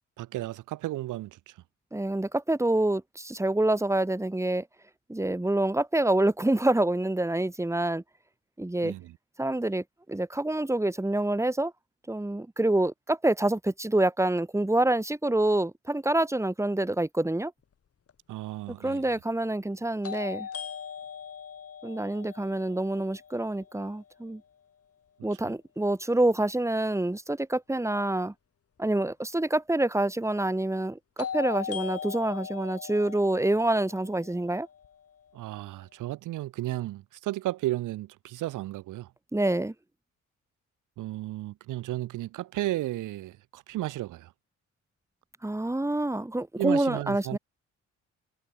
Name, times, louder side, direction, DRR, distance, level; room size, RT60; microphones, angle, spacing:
voice 1, 0.2-1.5 8.8-9.1 18.3-19.0 35.3-39.1 41.0-44.3 46.6-47.4, right 16 dB, 90° right, 3.0 m, -34 dB
voice 2, 1.9-4.7 5.1-8.0 8.6-8.9 9.4-9.8 10.1-11.7 12.1-17.5 18.8-20.5 21.8-24.4 25.2-28.3 28.8-34.7 39.3-39.7 45.4-47.4, right 1 dB, 10° right, 4.1 m, -27 dB
sound 1, 18.1-18.2 20.0-23.9 31.2-35.2, left 7 dB, 50° left, 7.1 m, -39 dB
cardioid pair, 90°, 30 cm